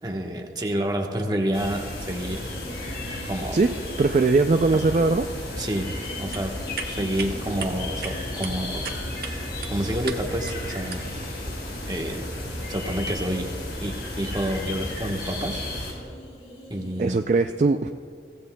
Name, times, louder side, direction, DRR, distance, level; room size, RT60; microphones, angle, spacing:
voice 1, 0.0-2.6 3.2-3.6 5.6-6.5 6.9-8.9 9.3-9.4 9.7-11.0 11.9-12.3 12.7-13.6 13.8-15.9 16.7-17.2, right 1 dB, 25° right, 1 dB, 1.1 m, -29 dB
sound 1, 1.5-15.9, left 1 dB, 75° left, 4.1 m, -33 dB
sound 2, 2.1-17.1, left 1 dB, 35° left, 2.4 m, -44 dB
voice 2, 3.5-5.3 17.0-17.9, right 3 dB, 40° right, 6 dB, 0.3 m, -21 dB
sound 3, 6.1-11.3, right 5 dB, 55° right, 1.1 m, -39 dB
23.0 x 16.0 x 2.2 m, 2.2 s
head